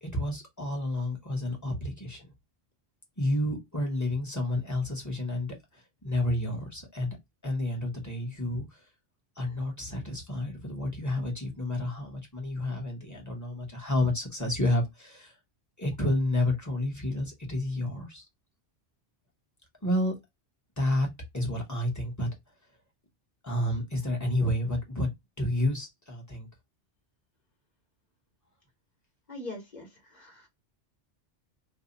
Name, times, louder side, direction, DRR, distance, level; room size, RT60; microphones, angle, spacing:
voice 1, 0.0-2.3 3.2-5.5 6.0-7.1 7.4-8.6 9.4-15.3 15.8-18.2 19.8-20.2 20.8-21.1 21.3-22.3 23.4-25.1 25.4-26.5, left 1 dB, 15° left, 0.9 m, -30 dB
voice 2, 29.3-30.5, left 2 dB, 40° left, 1.1 m, -42 dB
2.6 x 2.1 x 3.8 m
omnidirectional pair, 1.2 m